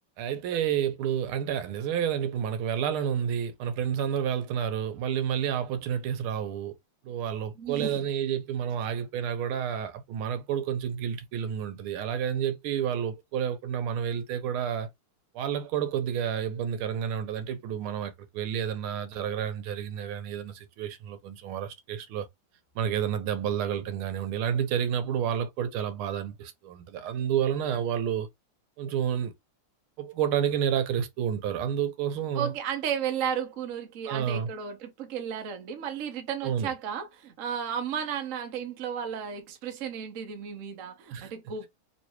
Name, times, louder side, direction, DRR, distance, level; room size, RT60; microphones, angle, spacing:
voice 1, 0.2-6.7 7.0-14.9 15.3-22.3 22.7-28.3 28.8-29.3 30.0-32.5 34.1-34.5 36.4-36.7 41.1-41.3, right 9 dB, 90° right, 1.6 m, -30 dB
voice 2, 7.6-8.1 32.3-41.7, right 8 dB, 55° right, 0.9 m, -34 dB
3.3 x 3.1 x 2.9 m
omnidirectional pair, 2.3 m